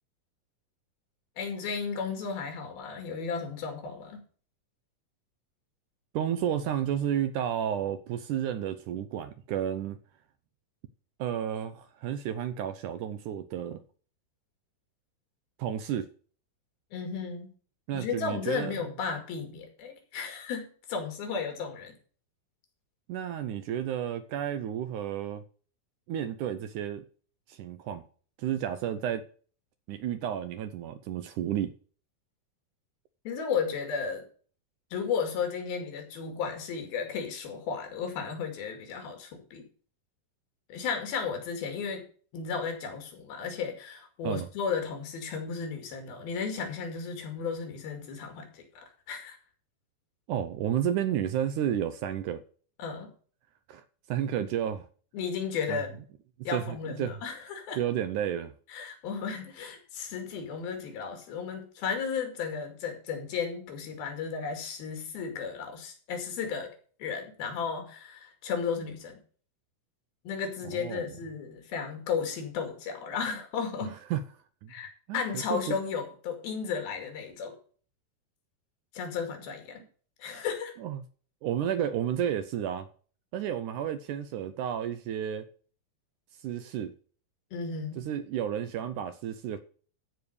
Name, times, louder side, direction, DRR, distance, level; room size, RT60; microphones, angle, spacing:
voice 1, 1.4-4.2 16.9-17.5 17.9-21.9 33.3-34.3 34.9-39.7 40.7-42.0 42.3-49.4 52.8-53.1 55.1-56.0 56.4-57.8 58.7-66.7 67.0-69.2 70.2-73.9 74.7-77.6 78.9-79.8 80.2-80.7 87.5-88.1, left 6 dB, 85° left, 4.1 m, -34 dB
voice 2, 6.1-10.0 11.2-13.8 15.6-16.1 17.9-18.8 23.1-25.4 26.1-27.0 27.5-28.0 28.4-29.2 29.9-31.7 44.2-44.5 50.3-52.4 53.7-54.9 55.7-55.8 56.5-57.1 57.8-58.5 70.7-71.1 74.1-74.2 74.6-74.7 75.1-75.8 80.8-81.0 81.4-82.9 83.3-85.5 86.4-86.9 88.0-89.6, right 10 dB, 75° right, 1.9 m, -31 dB
14.5 x 5.0 x 6.5 m
omnidirectional pair, 4.2 m